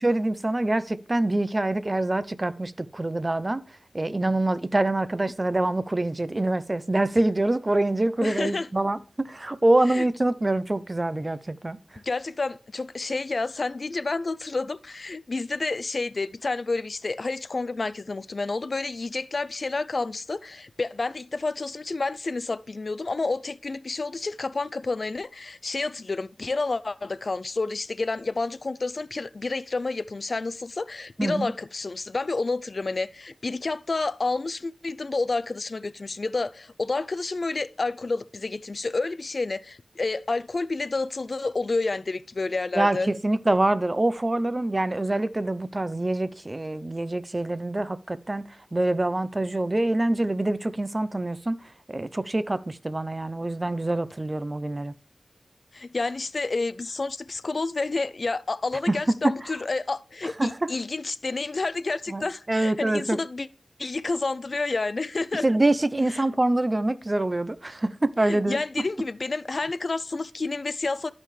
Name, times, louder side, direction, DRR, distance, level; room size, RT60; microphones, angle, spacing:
voice 1, 0.0-3.6 3.9-11.8 31.2-31.5 42.7-51.6 51.9-54.9 58.9-59.3 60.4-60.7 62.1-63.2 65.4-68.9, right 2 dB, 30° right, 0.5 m, -25 dB
voice 2, 8.2-8.7 9.9-10.1 12.0-43.1 55.7-63.5 63.8-65.5 66.1-66.2 68.2-71.1, left 3 dB, 55° left, 0.3 m, -29 dB
12.5 x 5.6 x 3.2 m
wide cardioid pair, 80°, 0 cm